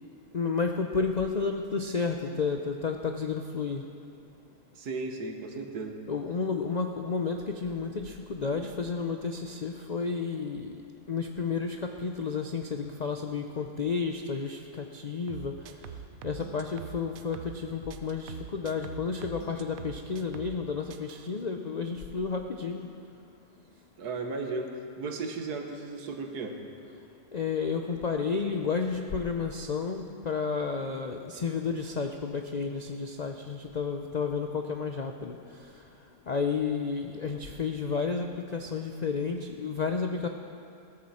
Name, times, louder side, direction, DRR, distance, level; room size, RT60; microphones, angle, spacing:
voice 1, 0.3-3.8 6.1-10.8 11.1-15.5 16.2-22.9 27.3-35.4 36.3-40.3, left 5 dB, 75° left, 4 dB, 0.3 m, -31 dB
voice 2, 4.8-6.0 24.0-26.6, right 3 dB, 90° right, 4 dB, 1.7 m, -35 dB
sound 1, 15.3-17.6 17.9-20.6 20.9-21.3, right 8 dB, 70° right, 1.1 m, -44 dB
16.0 x 14.0 x 4.3 m, 2.6 s
omnidirectional pair, 1.6 m